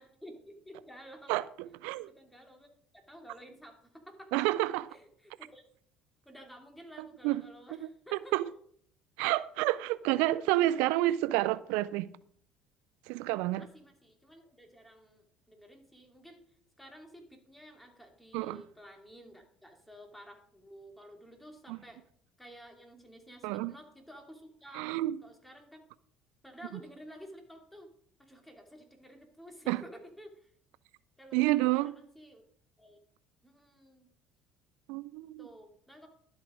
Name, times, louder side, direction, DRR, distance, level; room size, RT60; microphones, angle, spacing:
voice 1, 0.0-1.3 2.0-4.3 4.9-5.6 6.2-8.3 9.9-10.2 13.6-16.4 16.8-22.0 22.4-24.9 25.2-25.8 26.4-27.9 28.2-30.5 31.2-32.4 32.8-33.0 33.4-34.1 35.4-36.1, equal, 5° left, 2.8 m, -52 dB
voice 2, 1.3-2.1 4.3-5.0 7.2-7.4 7.7-7.9 8.3-8.5 9.2-12.1 13.1-13.7 18.3-18.6 21.7-21.8 23.4-23.7 24.7-25.2 29.7-29.8 31.3-31.9 34.9-35.5, right 17 dB, 80° right, 0.4 m, -29 dB
11.5 x 8.1 x 5.1 m
supercardioid pair, 85°, 2 cm